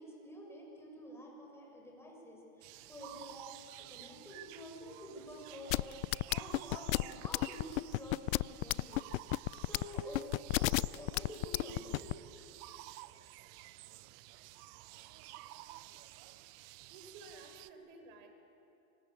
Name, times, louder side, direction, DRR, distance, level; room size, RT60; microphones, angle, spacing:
voice 1, 0.0-3.5 3.9-12.2, equal, 5° left, -1 dB, 6.6 m, -49 dB
sound 1, 2.6-17.7, right 16 dB, 35° right, 0.7 m, -52 dB
sound 2, 5.7-12.1, left 19 dB, 65° left, 0.5 m, -31 dB
voice 2, 16.9-18.3, right 3 dB, 55° right, 6 dB, 4.6 m, -53 dB
27.0 x 24.5 x 8.4 m, 2.8 s
supercardioid pair, 145°, 45 cm